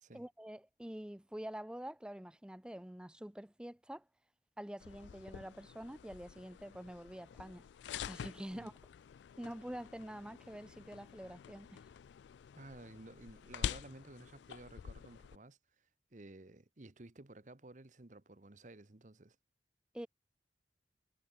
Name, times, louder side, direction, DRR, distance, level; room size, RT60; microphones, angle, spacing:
voice 1, 0.1-4.1 4.6-7.7 8.1-8.7 9.4-11.8 19.9-20.1, right 1 dB, 5° right, 0.4 m, -46 dB
sound 1, 4.8-15.4, left 8 dB, 75° left, 0.3 m, -47 dB
voice 2, 12.5-19.4, right 2 dB, 45° right, 1.1 m, -54 dB
head